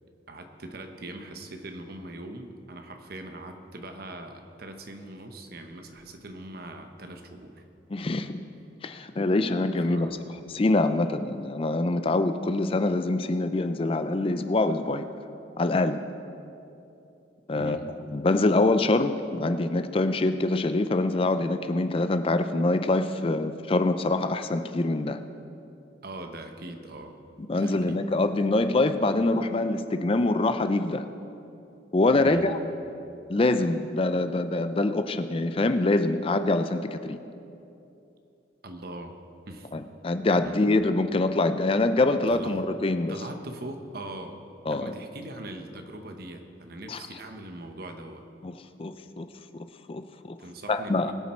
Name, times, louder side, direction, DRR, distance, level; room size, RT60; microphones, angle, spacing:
voice 1, 0.3-7.6 9.9-10.3 17.5-17.9 26.0-27.2 27.5-28.0 32.2-32.6 38.6-39.2 39.5-39.7 40.4-40.6 42.3-42.6 43.1-44.4 44.7-48.2 50.4-51.1, right 1 dB, 50° right, 6 dB, 1.0 m, -41 dB
voice 2, 7.9-8.4 8.8-10.1 10.5-15.1 15.6-16.0 17.5-17.8 18.1-25.2 27.5-31.1 31.9-32.6 33.3-37.2 39.7-43.2 44.7-44.9 46.9-47.0 48.4-49.3 49.5-50.4 50.7-51.1, left 2 dB, 30° left, 10 dB, 0.4 m, -25 dB
21.5 x 7.3 x 4.4 m, 2.8 s
head